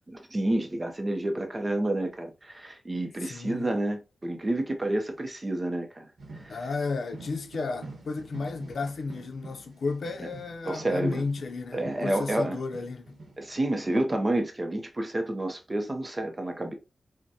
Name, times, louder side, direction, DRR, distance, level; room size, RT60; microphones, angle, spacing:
voice 1, 0.1-6.1 6.4-6.6 10.6-11.2 11.7-12.6 13.4-16.7, right 1 dB, 25° right, 0.6 m, -29 dB
voice 2, 3.2-3.7 6.5-13.2, left 4 dB, 75° left, 0.6 m, -33 dB
sound 1, 6.2-14.0, right 3 dB, 75° right, 1.0 m, -47 dB
6.0 x 2.1 x 2.7 m
wide cardioid pair, 170°, 0 cm